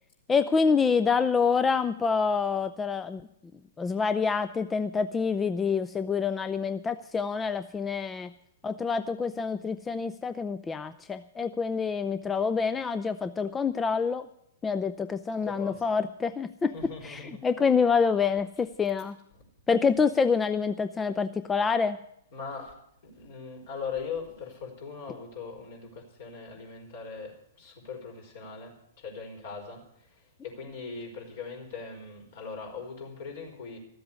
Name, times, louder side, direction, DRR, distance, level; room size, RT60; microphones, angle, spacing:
voice 1, 0.3-3.2 3.8-8.3 8.6-14.3 14.6-16.7 17.0-19.2 19.7-22.0, left 5 dB, 15° left, 11 dB, 0.4 m, -27 dB
voice 2, 15.4-16.0 16.7-17.5 22.3-22.7 23.0-33.8, left 5 dB, 60° left, 1 dB, 5.1 m, -40 dB
13.5 x 7.9 x 9.6 m, 0.73 s
hypercardioid pair, 120°, 0 cm